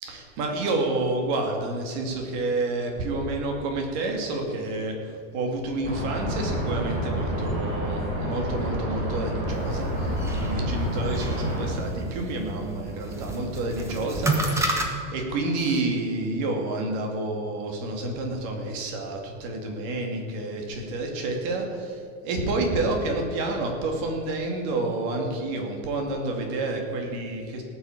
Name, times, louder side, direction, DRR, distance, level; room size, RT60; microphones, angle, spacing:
voice 1, 0.0-14.8 15.1-27.6, right 2 dB, 45° right, 2 dB, 2.4 m, -29 dB
sound 1, 5.8-11.7, equal, 25° right, 4.5 m, -28 dB
sound 2, 9.5-14.9, right 2 dB, 5° right, 1.0 m, -31 dB
17.5 x 6.3 x 8.4 m, 2.3 s
supercardioid pair, 175°, 37 cm